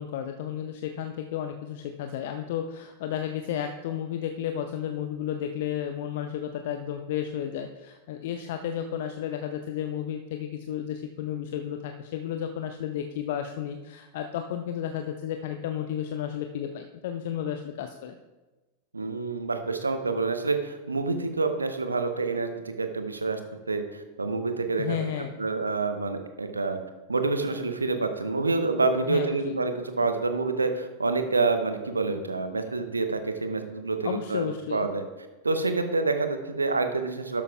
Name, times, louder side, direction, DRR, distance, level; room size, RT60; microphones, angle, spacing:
voice 1, 0.0-18.2 24.8-25.3 29.1-29.5 34.0-34.9, left 9 dB, 55° left, 6 dB, 0.6 m, -32 dB
voice 2, 18.9-23.4 23.7-25.1 25.4-26.8 27.1-35.0 35.4-37.4, right 3 dB, 80° right, 8 dB, 0.9 m, -27 dB
12.0 x 12.0 x 2.4 m, 1.2 s
figure-of-eight pair, 90°, 0 cm